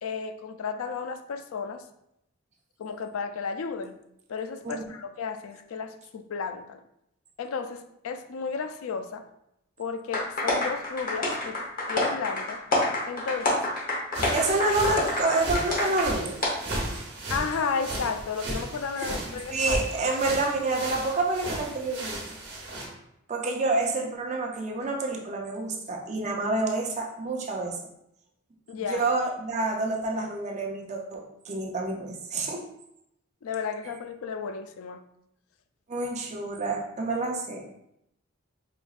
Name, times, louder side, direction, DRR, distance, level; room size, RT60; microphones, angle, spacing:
voice 1, 0.0-1.8 2.8-4.0 4.3-6.8 7.4-9.3 9.8-11.6 11.9-12.6 13.1-13.6 17.3-19.8 28.7-29.1 33.4-35.0, left 5 dB, 85° left, 8 dB, 0.4 m, -33 dB
sound 1, 10.1-16.1 16.4-16.5, left 2 dB, 40° left, 0.9 m, -27 dB
sound 2, 14.1-22.9, right 1 dB, 60° right, 1.1 m, -35 dB
voice 2, 14.3-16.4 19.0-19.1 19.5-22.2 23.3-27.8 28.9-32.6 35.9-37.6, right 2 dB, 35° right, 0 dB, 0.5 m, -28 dB
5.0 x 2.9 x 2.4 m, 0.79 s
head